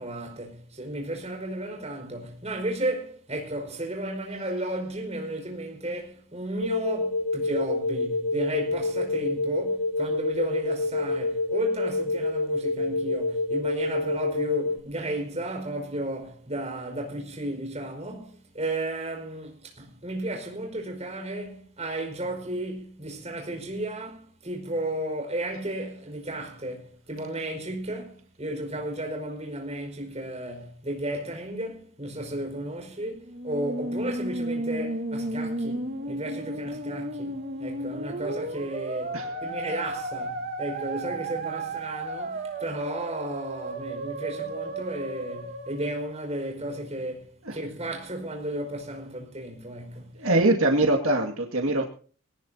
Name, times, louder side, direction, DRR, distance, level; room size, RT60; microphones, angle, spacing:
voice 1, 0.0-50.2, right 1 dB, 30° right, 5.1 m, -34 dB
sound 1, 6.6-14.8, left 2 dB, 50° left, 0.7 m, -27 dB
Musical instrument, 33.2-46.6, right 2 dB, 45° right, 1.7 m, -34 dB
voice 2, 50.2-51.9, right 2 dB, 75° right, 2.1 m, -23 dB
21.0 x 18.5 x 2.8 m
head